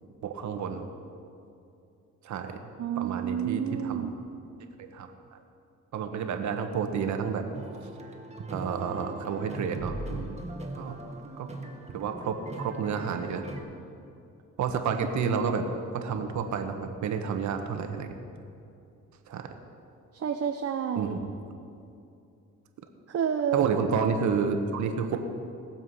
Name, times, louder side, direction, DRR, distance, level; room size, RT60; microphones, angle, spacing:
voice 1, 0.2-0.9 2.2-2.6 3.0-4.1 4.8-5.1 5.9-7.5 8.5-10.4 10.8-11.0 11.4-11.5 11.9-13.5 14.6-15.6 15.9-18.1 19.3-19.5 20.9-21.2 23.5-25.2, right 6 dB, 70° right, 6 dB, 1.3 m, -30 dB
voice 2, 2.8-4.1 20.1-21.2 23.1-23.7, right 8 dB, 50° right, 4 dB, 0.9 m, -29 dB
sound 1, 7.5-13.6, right 2 dB, 20° right, 1.5 m, -40 dB
20.5 x 7.3 x 5.6 m, 2.6 s
cardioid pair, 90°, 30 cm